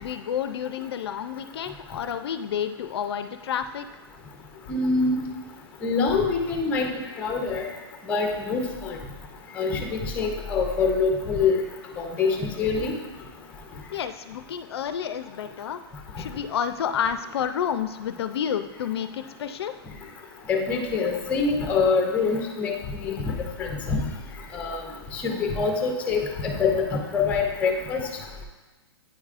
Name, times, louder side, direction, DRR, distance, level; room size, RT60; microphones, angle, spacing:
voice 1, 0.0-3.9 13.9-15.8 16.2-19.7, left 8 dB, 70° left, 10 dB, 0.4 m, -30 dB
voice 2, 4.7-5.2 5.8-6.9 7.2-7.7 8.1-9.0 9.6-11.6 12.0-12.9 20.5-23.1 23.6-24.0 24.5-24.8 25.1-28.0, left 4 dB, 10° left, 2 dB, 0.5 m, -25 dB
9.0 x 4.8 x 2.4 m, 1.2 s
hypercardioid pair, 170°, 14 cm